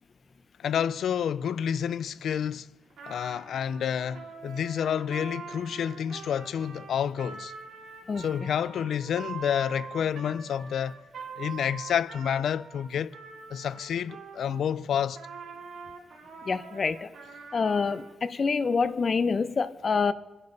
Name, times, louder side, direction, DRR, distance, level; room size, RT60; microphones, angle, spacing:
voice 1, 0.6-2.7 3.1-7.5 8.2-11.0 11.4-13.1 13.5-15.2, left 8 dB, 90° left, 0.4 m, -29 dB
Trumpet, 2.9-14.7 15.1-18.1, right 5 dB, 90° right, 2.9 m, -44 dB
voice 2, 16.4-17.1 17.5-20.1, left 5 dB, 50° left, 0.8 m, -26 dB
27.0 x 10.5 x 4.0 m
cardioid pair, 90°, 0 cm